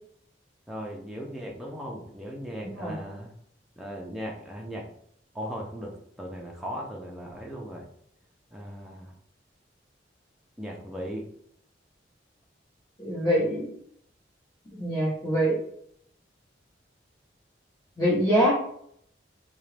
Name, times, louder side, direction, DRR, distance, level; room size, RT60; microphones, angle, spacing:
voice 1, 0.7-3.3 3.8-4.9 5.3-7.9 8.5-9.1 10.6-11.3, equal, ahead, -2 dB, 0.5 m, -37 dB
voice 2, 13.0-13.7 14.7-15.6 18.0-18.6, equal, 20° left, -10 dB, 1.1 m, -24 dB
2.9 x 2.6 x 3.3 m, 0.67 s
head